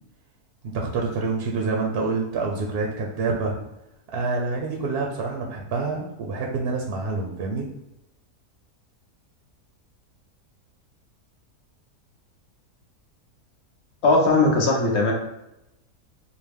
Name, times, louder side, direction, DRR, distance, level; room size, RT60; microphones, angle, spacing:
voice 1, 0.7-3.6 4.1-7.7, right 3 dB, 60° right, 0 dB, 0.6 m, -27 dB
voice 2, 14.0-15.1, left 2 dB, 55° left, -1 dB, 1.0 m, -19 dB
4.9 x 2.2 x 3.4 m, 0.90 s
omnidirectional pair, 1.6 m